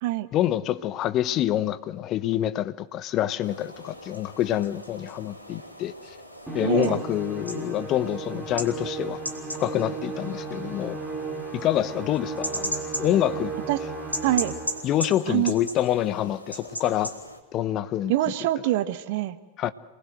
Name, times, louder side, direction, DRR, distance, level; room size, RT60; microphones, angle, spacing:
voice 1, 0.3-5.9 6.5-9.2 9.6-11.0 11.5-13.5 14.8-17.1 17.5-18.1 19.6-19.7, left 12 dB, 35° left, 1.1 m, -26 dB
sound 1, 3.4-17.4, equal, 85° left, 3.2 m, -38 dB
Musical instrument, 6.5-14.9, right 3 dB, 10° right, 4.3 m, -35 dB
voice 2, 6.6-7.0 13.7-13.8 14.2-14.5 15.3-15.5 18.1-19.4, right 15 dB, 50° right, 1.5 m, -25 dB
28.0 x 19.5 x 7.9 m
figure-of-eight pair, 90°, 0 cm